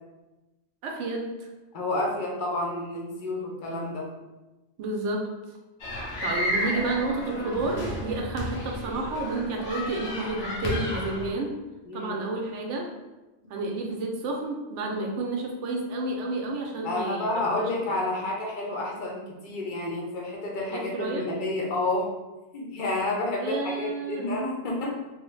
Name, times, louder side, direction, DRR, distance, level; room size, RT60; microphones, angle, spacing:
voice 1, 0.8-1.3 4.8-5.3 6.2-11.5 11.9-12.9 13.5-18.0 20.7-21.3 23.4-24.8, right 2 dB, 75° right, 1 dB, 0.9 m, -31 dB
voice 2, 1.7-4.1 11.9-12.2 16.8-22.1 22.5-25.0, left 2 dB, 50° left, -2 dB, 0.7 m, -30 dB
sound 1, 5.8-11.3, left 1 dB, 90° left, 1.0 m, -32 dB
3.2 x 2.0 x 3.1 m, 1.1 s
omnidirectional pair, 1.2 m